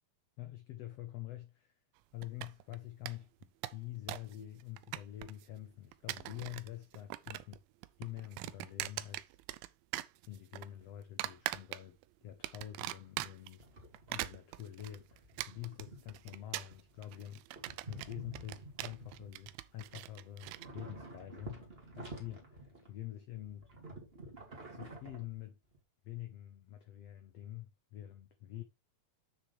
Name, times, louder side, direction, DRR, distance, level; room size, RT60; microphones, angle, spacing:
voice 1, 0.4-1.7 2.1-7.6 8.0-9.4 10.3-13.7 14.1-17.4 17.9-21.6 21.9-23.7 24.7-25.6 26.0-28.6, left 13 dB, 85° left, 1.4 m, -46 dB
sound 1, 2.2-2.8 3.1-3.2 3.4-4.3 4.6-5.4 5.9-6.7 6.9-7.6 7.8-9.7 9.9-10.7 11.2-12.0 12.4-13.5 13.9-20.7, right 17 dB, 90° right, 2.4 m, -41 dB
sound 2, 13.6-14.4 14.7-17.2 17.5-20.1 20.4-23.1 23.4-25.8, right 2 dB, 20° right, 1.7 m, -51 dB
8.1 x 6.5 x 3.3 m
omnidirectional pair, 4.1 m